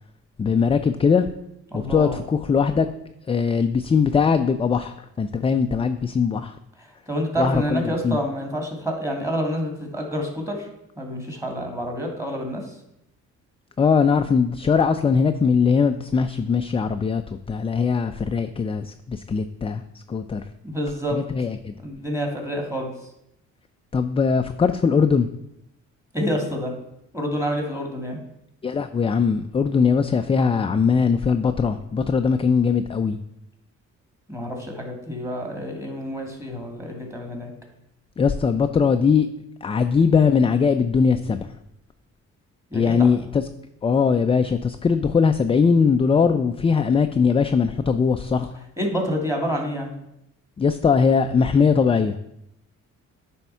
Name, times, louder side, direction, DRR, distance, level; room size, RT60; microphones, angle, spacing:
voice 1, 0.4-1.3 1.7-2.9 3.3-6.5 7.4-8.2 13.8-17.2 17.5-20.4 21.1-21.7 23.9-25.3 28.6-33.2 38.2-39.3 39.6-41.5 42.7-43.4 43.8-48.5 50.6-52.2, left 5 dB, 20° left, 8 dB, 0.3 m, -20 dB
voice 2, 1.7-2.2 7.1-10.7 11.0-12.6 20.6-21.2 21.8-22.9 26.1-26.7 27.1-28.2 34.3-37.5 42.7-43.1 48.8-49.9, equal, 10° right, 1 dB, 2.1 m, -28 dB
8.8 x 3.6 x 5.5 m, 0.81 s
cardioid pair, 90°, 30 cm